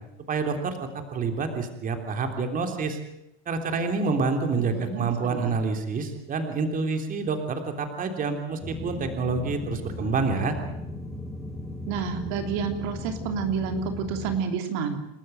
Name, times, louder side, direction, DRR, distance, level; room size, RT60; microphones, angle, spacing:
voice 1, 0.3-0.8 1.1-3.0 3.4-10.6, right 4 dB, 25° right, 5 dB, 3.4 m, -27 dB
voice 2, 4.7-5.5 11.9-15.0, right 6 dB, 55° right, 6 dB, 3.2 m, -29 dB
sound 1, 8.6-14.4, left 1 dB, ahead, 2.0 m, -37 dB
29.0 x 13.0 x 9.2 m, 0.84 s
supercardioid pair, 135°, 31 cm